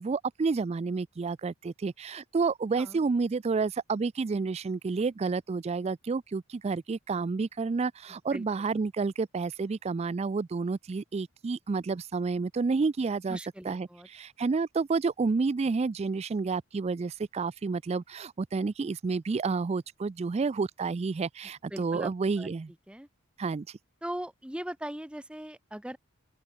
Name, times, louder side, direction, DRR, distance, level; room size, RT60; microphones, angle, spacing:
voice 1, 0.0-13.4 13.6-22.7 23.4-23.8, right 4 dB, 30° right, 0.3 m, -30 dB
voice 2, 13.3-14.1 21.7-22.1 22.4-22.5 22.9-23.1 24.0-26.0, right 1 dB, 5° right, 1.0 m, -39 dB
open air
head